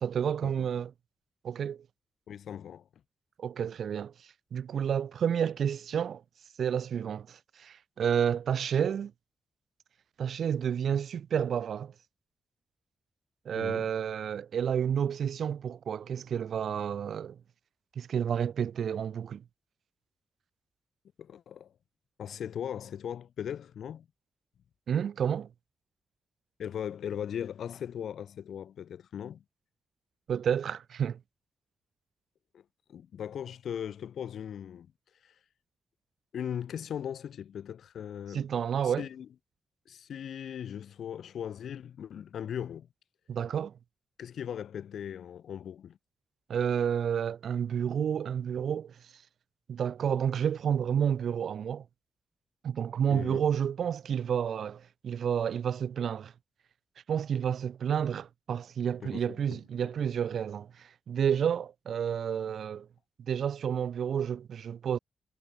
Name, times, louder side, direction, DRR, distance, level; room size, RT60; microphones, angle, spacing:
voice 1, 0.0-0.9 1.4-1.9 3.4-6.2 6.6-9.1 10.2-11.9 13.5-17.4 18.0-19.4 24.9-25.5 30.3-31.2 38.3-39.1 43.3-43.7 46.5-49.2 49.7-51.9 52.6-56.3 57.1-62.9 63.2-65.0, right 8 dB, 70° right, 0.5 m, -30 dB
voice 2, 2.3-2.9 13.5-13.9 21.2-21.7 22.2-24.1 26.6-29.4 32.5-32.6 32.9-34.9 35.2-35.3 36.3-38.5 38.8-39.3 39.8-42.9 44.2-46.0 53.1-53.4 59.0-59.6, left 9 dB, 80° left, 1.6 m, -38 dB
wide cardioid pair, 150°, 0 cm